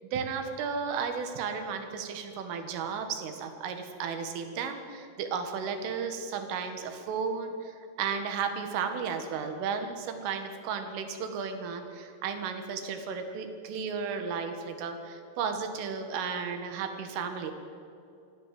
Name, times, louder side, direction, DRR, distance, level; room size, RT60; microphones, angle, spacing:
voice 1, 0.1-17.5, right 6 dB, 90° right, 6 dB, 4.4 m, -34 dB
24.5 x 15.5 x 7.8 m, 2.7 s
omnidirectional pair, 5.6 m